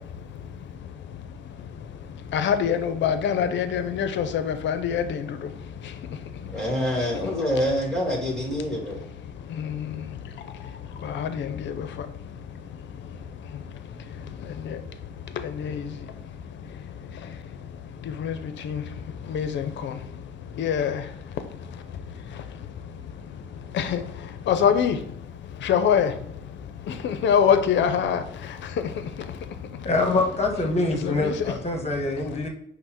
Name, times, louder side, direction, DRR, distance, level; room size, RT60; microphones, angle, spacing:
voice 1, 0.0-6.6 7.0-7.3 9.0-29.9 31.0-31.4 32.2-32.5, left 8 dB, 65° left, 10 dB, 0.6 m, -28 dB
voice 2, 6.5-9.0, equal, 5° left, -4 dB, 1.6 m, -26 dB
voice 3, 29.8-32.5, left 2 dB, 30° left, 3 dB, 1.1 m, -25 dB
5.3 x 2.1 x 4.4 m, 0.73 s
supercardioid pair, 75°, 21 cm